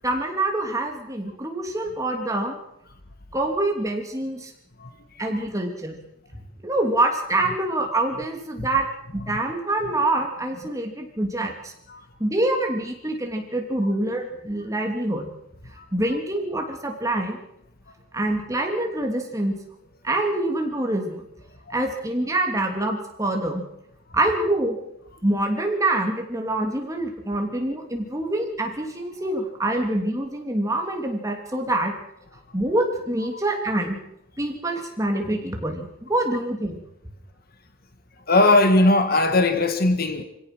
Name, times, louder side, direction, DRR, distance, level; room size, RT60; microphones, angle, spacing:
voice 1, 0.0-2.5 3.3-4.5 5.2-5.9 6.6-8.9 9.1-11.5 12.2-15.3 15.9-17.4 18.1-19.5 20.0-21.2 21.7-23.6 24.1-24.8 25.2-31.9 32.5-34.0 34.4-36.8, right 1 dB, 15° right, 2.9 m, -25 dB
voice 2, 38.3-40.2, left 2 dB, 45° left, 1.6 m, -20 dB
25.5 x 17.0 x 6.2 m
head